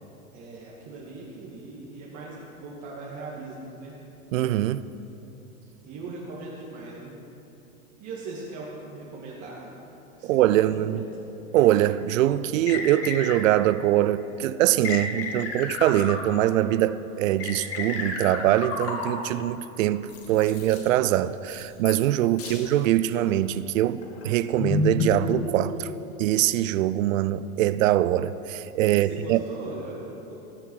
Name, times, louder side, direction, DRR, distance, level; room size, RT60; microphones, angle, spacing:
voice 1, 0.3-3.9 5.8-7.2 8.0-9.8 10.2-11.0 22.2-22.6 28.9-30.3, right 3 dB, 40° right, 2.2 m, -40 dB
voice 2, 4.3-4.8 10.2-11.0 11.5-25.9 26.2-29.4, right 13 dB, 65° right, 0.6 m, -23 dB
sound 1, 11.6-11.7 12.7-13.7 14.8-16.6 17.4-19.4 20.1-20.9 21.5-22.1 22.4-22.7 23.2-23.4 24.0-25.9, left 3 dB, 35° left, 1.9 m, -31 dB
19.0 x 6.8 x 4.8 m
hypercardioid pair, 110°, 42 cm